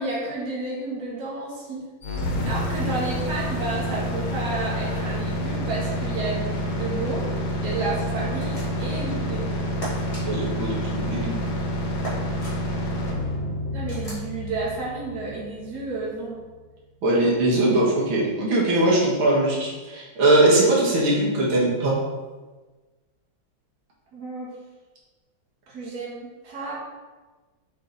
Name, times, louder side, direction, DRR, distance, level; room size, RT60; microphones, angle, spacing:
voice 1, 0.0-1.8 2.4-7.3 7.6-9.5 13.7-16.4 24.1-24.5 25.7-26.8, right 3 dB, 55° right, -5 dB, 2.1 m, -31 dB
sound 1, 2.0-16.0, equal, 90° left, 2.0 m, -28 dB
sound 2, 8.4-9.0 9.8-10.2 12.0-12.6 13.9-14.3, right 2 dB, 15° left, 2.1 m, -36 dB
voice 2, 10.2-11.4 17.0-22.0, right 2 dB, 90° right, -5 dB, 2.4 m, -21 dB
6.9 x 4.5 x 4.0 m, 1.3 s
omnidirectional pair, 2.2 m